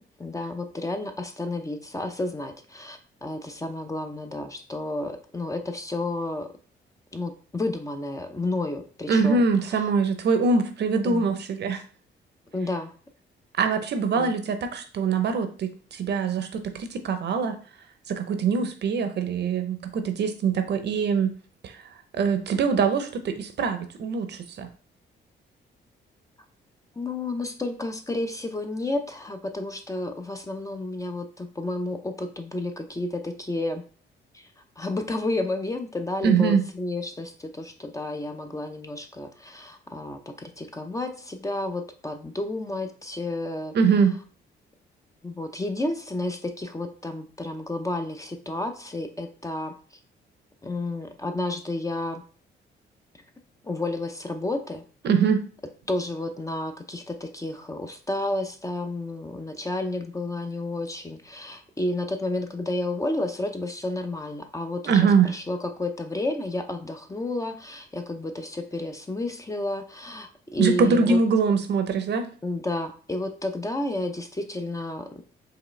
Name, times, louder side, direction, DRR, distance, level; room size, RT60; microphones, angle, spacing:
voice 1, 0.2-6.5 7.1-9.4 9.7-9.9 11.0-11.2 12.5-12.9 14.1-14.3 27.0-33.8 34.3-34.5 34.8-43.7 45.2-49.7 50.6-52.2 53.6-54.8 55.9-71.2 72.4-75.2, left 2 dB, 15° left, 6 dB, 0.5 m, -31 dB
voice 2, 9.1-11.8 13.6-17.6 18.1-21.3 21.6-21.8 22.2-24.7 36.2-36.6 43.7-44.2 55.0-55.4 64.9-65.3 70.6-72.3, right 5 dB, 60° right, 8 dB, 0.7 m, -23 dB
4.8 x 3.1 x 3.2 m, 0.41 s
cardioid pair, 90°, 20 cm